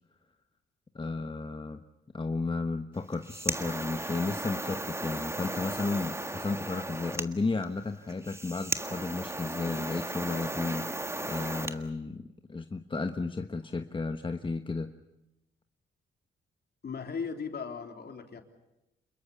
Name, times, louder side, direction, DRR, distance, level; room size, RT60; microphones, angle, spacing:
voice 1, 0.9-1.8 2.1-14.9, left 3 dB, 25° left, 7 dB, 1.2 m, -33 dB
sound 1, 3.0-11.8, right 1 dB, 15° right, 1.7 m, -36 dB
voice 2, 16.8-18.4, left 5 dB, 55° left, 5 dB, 3.5 m, -37 dB
27.5 x 22.0 x 7.1 m, 0.94 s
cardioid pair, 75°, 20 cm